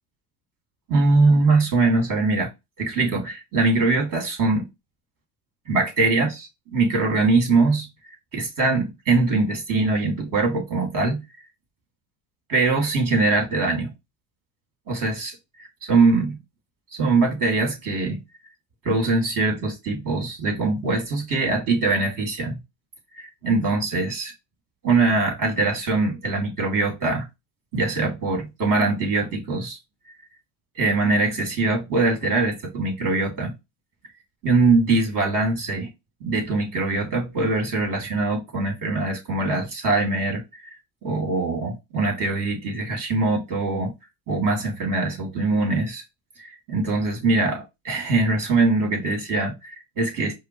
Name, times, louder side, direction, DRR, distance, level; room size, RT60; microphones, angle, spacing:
voice 1, 0.9-2.5 2.8-4.7 5.7-7.9 8.3-11.2 12.5-13.9 14.9-16.4 16.9-18.2 18.8-22.6 23.2-24.3 24.8-27.3 27.7-29.8 30.8-33.5 34.4-35.9 36.2-43.9 44.3-46.0 46.4-50.3, right 3 dB, 45° right, 2.2 m, -22 dB
4.9 x 2.1 x 3.0 m
hypercardioid pair, 75°, 45 cm